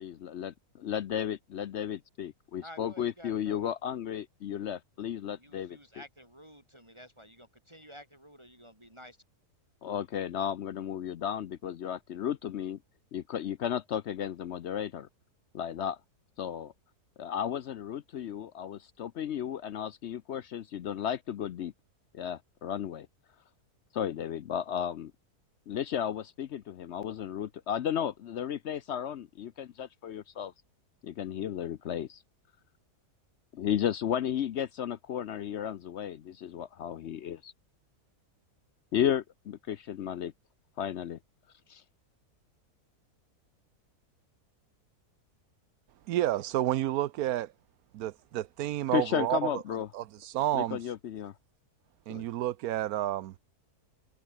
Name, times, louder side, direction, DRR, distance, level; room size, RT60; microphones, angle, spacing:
voice 1, 0.0-5.8 9.8-12.8 13.1-15.1 15.5-16.0 16.4-16.7 17.2-21.7 22.1-23.1 23.9-25.1 25.7-30.5 31.0-32.2 33.5-37.5 38.9-40.3 40.8-41.2 41.7-41.8 48.9-49.9 50.5-51.3 52.1-52.2, left 9 dB, 60° left, 0.7 m, -34 dB
voice 2, 2.6-3.6 5.4-9.2, equal, 15° right, 6.3 m, -51 dB
voice 3, 46.1-47.5 47.9-49.6 49.9-50.8 52.1-53.3, right 13 dB, 75° right, 1.1 m, -30 dB
omnidirectional pair, 1.7 m